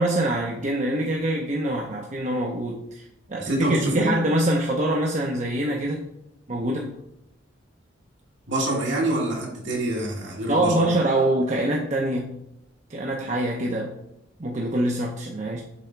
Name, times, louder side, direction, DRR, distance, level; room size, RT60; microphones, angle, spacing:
voice 1, 0.0-6.0 6.5-6.9 10.5-12.4 12.9-13.9 14.4-15.6, right 1 dB, 35° right, 0.6 m, -25 dB
voice 2, 3.4-4.1 8.5-10.9, right 1 dB, 65° right, 1.7 m, -26 dB
6.7 x 3.4 x 4.4 m
head